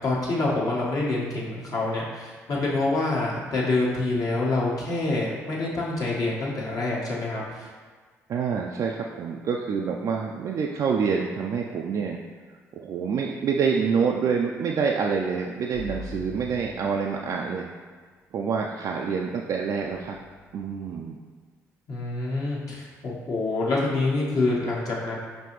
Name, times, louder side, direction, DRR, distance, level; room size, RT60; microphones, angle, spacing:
voice 1, 0.0-7.7 21.9-25.2, left 2 dB, 55° left, -5 dB, 1.2 m, -26 dB
voice 2, 8.3-12.2 12.8-17.7 18.3-20.2 20.5-21.2, right 6 dB, 55° right, 0 dB, 0.3 m, -27 dB
sound 1, 15.7-17.5 19.8-20.7, left 3 dB, 90° left, 0.6 m, -41 dB
5.2 x 2.7 x 3.0 m, 1.5 s
hypercardioid pair, 50°, 7 cm